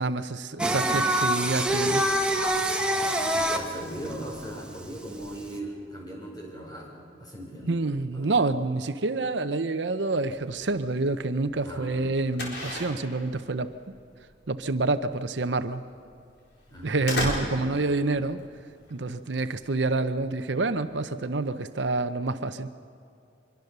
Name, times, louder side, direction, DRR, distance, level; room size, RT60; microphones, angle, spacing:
voice 1, 0.0-2.1 7.7-13.7 14.5-15.8 16.8-18.4 18.9-22.7, right 3 dB, 75° right, 10 dB, 0.8 m, -27 dB
Singing, 0.6-5.6, right 1 dB, 5° right, 1.3 m, -26 dB
voice 2, 3.3-7.8 8.1-8.3 11.6-12.1 16.7-17.1, right 1 dB, 20° left, -1 dB, 5.4 m, -39 dB
sound 1, 10.3-20.9, left 1 dB, 65° left, 4.4 m, -37 dB
24.5 x 22.5 x 6.8 m, 2.5 s
head